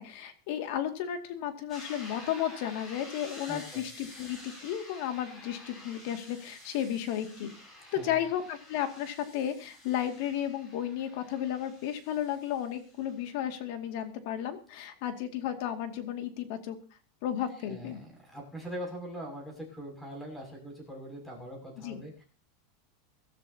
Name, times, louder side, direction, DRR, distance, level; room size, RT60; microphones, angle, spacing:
voice 1, 0.0-7.5 7.9-16.8 17.2-18.0 21.8-22.0, left 10 dB, 60° left, 7 dB, 2.2 m, -33 dB
sound 1, 1.7-13.4, left 1 dB, 20° left, 6.8 m, -50 dB
voice 2, 3.5-3.8 7.8-8.2 17.7-22.2, equal, 5° left, 0 dB, 6.7 m, -42 dB
23.0 x 13.0 x 2.9 m, 0.35 s
supercardioid pair, 155°, 0 cm